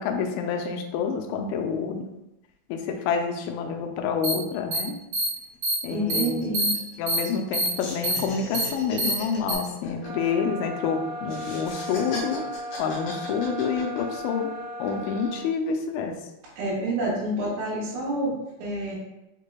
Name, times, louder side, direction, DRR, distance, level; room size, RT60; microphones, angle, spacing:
voice 1, 0.0-2.1 2.7-5.0 5.8-6.4 7.0-12.4 12.8-16.2, left 6 dB, 85° left, 4 dB, 2.3 m, -28 dB
sound 1, 4.2-4.3 4.7-4.8 5.1-5.3 5.6-5.7 6.1-6.2 6.5-6.7 7.1-7.2 7.5-7.7 8.0-8.1 8.5-8.6 9.0-9.1 9.5-9.6, right 1 dB, 55° right, 2.7 m, -25 dB
sound 2, 5.0-5.1 5.4-5.6 5.9-7.5 7.8-10.9 11.3-14.4 14.8-15.4, left 2 dB, 65° left, 2.6 m, -40 dB
voice 2, 5.9-6.7 16.6-19.0, right 1 dB, 85° right, -7 dB, 3.0 m, -28 dB
sound 3, 10.0-15.6, equal, 70° right, 2.1 m, -36 dB
6.4 x 3.2 x 2.2 m, 0.92 s
omnidirectional pair, 4.4 m